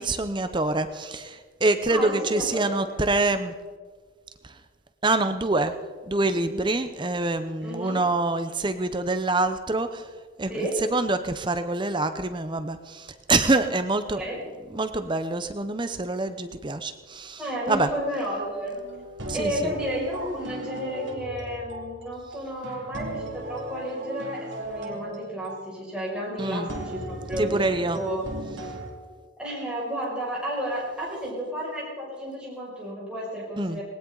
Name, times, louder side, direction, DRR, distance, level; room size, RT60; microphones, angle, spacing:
voice 1, 0.0-3.5 4.4-4.5 5.0-5.7 6.1-10.1 10.4-14.2 14.7-17.4 17.7-17.9 19.3-19.7 26.4-26.7 27.4-28.0 33.6-33.8, right 2 dB, 25° right, 9 dB, 0.7 m, -26 dB
voice 2, 1.9-3.0 7.6-8.0 10.5-10.8 14.1-14.4 17.4-18.8 19.3-28.2 29.4-33.8, equal, 5° right, -6 dB, 6.1 m, -32 dB
sound 1, 18.7-28.9, right 1 dB, 60° right, 2.7 m, -37 dB
19.5 x 18.5 x 3.9 m, 1.5 s
head